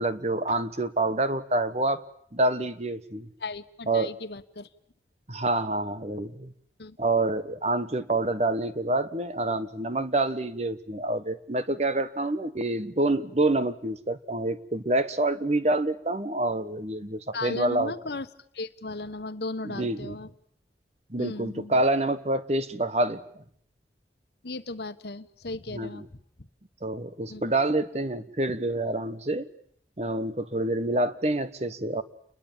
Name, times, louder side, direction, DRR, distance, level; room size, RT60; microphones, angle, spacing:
voice 1, 0.0-2.0 2.3-3.3 3.9-4.1 5.3-6.5 7.0-17.9 19.6-20.1 21.1-23.4 25.7-26.0 26.8-29.5 30.0-32.0, right 2 dB, 35° right, 12 dB, 1.2 m, -27 dB
voice 2, 3.4-4.7 6.8-7.0 17.3-18.3 18.5-20.3 21.2-21.8 24.4-26.1 27.3-27.5, left 3 dB, 70° left, 11 dB, 1.3 m, -36 dB
29.5 x 21.5 x 7.3 m, 0.64 s
head